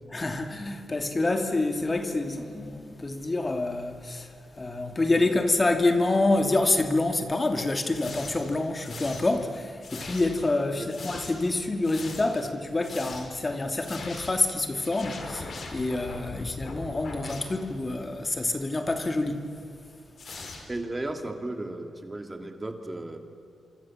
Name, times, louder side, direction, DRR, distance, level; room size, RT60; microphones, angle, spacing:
voice 1, 0.1-19.5, left 2 dB, 30° left, 2.4 m, -27 dB
sound 1, 7.9-8.5 8.8-9.4 9.8-10.5 10.9-11.5 11.8-12.5 12.8-13.4 13.8-14.5 14.8-17.9 18.9-19.1 20.2-21.0, left 3 dB, 60° left, 4.7 m, -41 dB
voice 2, 20.7-23.2, right 2 dB, 20° right, 2.7 m, -35 dB
26.0 x 25.5 x 7.4 m
cardioid pair, 75°, 0 cm